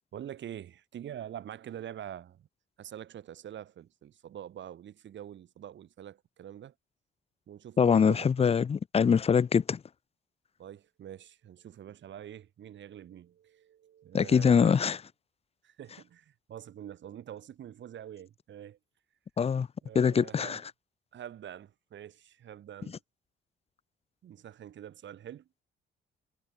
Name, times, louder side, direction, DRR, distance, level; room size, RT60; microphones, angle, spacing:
voice 1, 0.1-2.5 2.8-6.7 7.5-8.5 10.6-14.8 15.6-18.8 19.8-20.6 21.1-23.0 24.2-25.5, right 10 dB, 65° right, 5.4 m, -45 dB
voice 2, 7.8-9.8 14.1-15.0 19.4-19.7 19.9-20.6, left 6 dB, 30° left, 0.6 m, -23 dB
cardioid pair, 90°, 20 cm